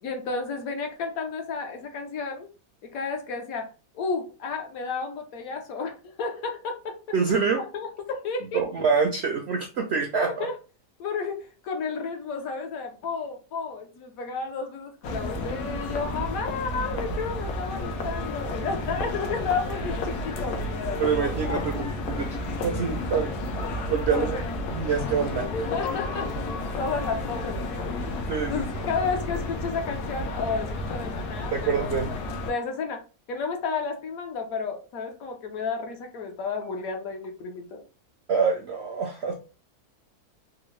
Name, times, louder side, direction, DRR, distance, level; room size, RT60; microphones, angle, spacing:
voice 1, 0.0-2.5 2.8-8.7 10.1-10.6 11.0-21.9 24.1-24.6 25.5-26.3 26.8-28.0 28.5-32.2 32.4-33.0 33.3-37.9, left 4 dB, 70° left, 1.1 m, -32 dB
voice 2, 7.1-7.6 8.5-10.5 21.0-23.4 23.9-24.4 24.7-25.5 28.3-28.9 31.5-32.2 38.3-39.3, right 6 dB, 75° right, 0.6 m, -26 dB
sound 1, 15.0-32.5, left 2 dB, 85° left, 1.2 m, -31 dB
3.6 x 2.0 x 3.0 m
omnidirectional pair, 1.6 m